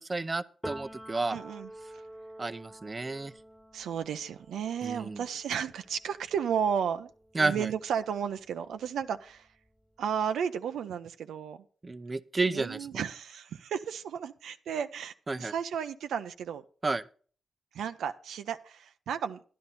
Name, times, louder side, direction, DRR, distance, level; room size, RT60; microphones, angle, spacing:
voice 1, 0.0-1.4 2.4-3.3 4.8-5.2 7.3-7.7 11.8-12.8 15.3-15.5 16.8-17.0, right 3 dB, 35° right, 0.6 m, -31 dB
Piano, 0.6-8.2 8.6-10.1, right 1 dB, 5° right, 1.4 m, -49 dB
voice 2, 1.3-1.7 3.7-7.1 7.4-9.5 10.0-11.6 12.5-16.6 17.7-19.4, right 8 dB, 85° right, 0.6 m, -33 dB
11.0 x 10.5 x 4.1 m
supercardioid pair, 55°, 0 cm